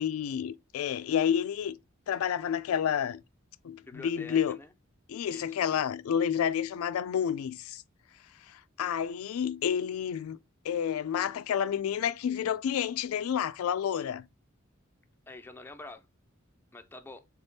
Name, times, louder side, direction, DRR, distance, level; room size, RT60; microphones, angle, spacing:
voice 1, 0.0-1.8 2.1-3.2 3.6-4.6 5.1-7.8 8.5-10.4 10.6-14.3, left 8 dB, 80° left, 0.3 m, -30 dB
voice 2, 3.9-4.7 5.2-5.5 15.3-16.1 16.7-17.2, left 2 dB, 10° left, 0.4 m, -46 dB
3.6 x 3.5 x 2.6 m
head